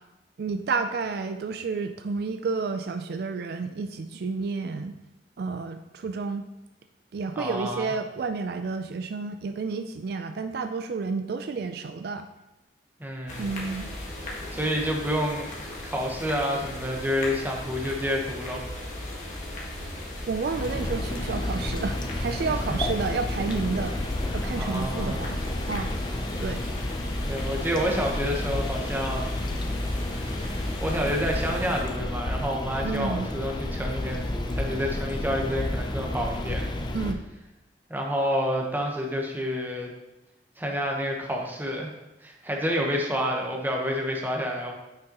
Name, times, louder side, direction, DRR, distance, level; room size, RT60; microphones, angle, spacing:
voice 1, 0.4-5.0 5.4-6.4 7.1-12.3 13.4-13.9 20.3-24.0 24.3-25.4 25.7-25.9 26.4-26.6 32.8-33.3 36.9-37.3, right 4 dB, 60° right, 8 dB, 0.4 m, -30 dB
voice 2, 7.3-7.9 13.0-13.5 14.5-15.5 15.8-18.6 22.6-22.8 24.6-25.2 27.2-29.4 30.1-30.3 30.8-36.7 37.9-39.9 40.6-41.9 42.2-44.7, equal, 10° right, 0 dB, 1.0 m, -29 dB
sound 1, 13.3-31.8, left 1 dB, 45° left, 1.5 m, -37 dB
sound 2, 20.6-37.1, left 1 dB, 25° left, 0.5 m, -31 dB
9.1 x 5.4 x 2.9 m, 0.98 s
head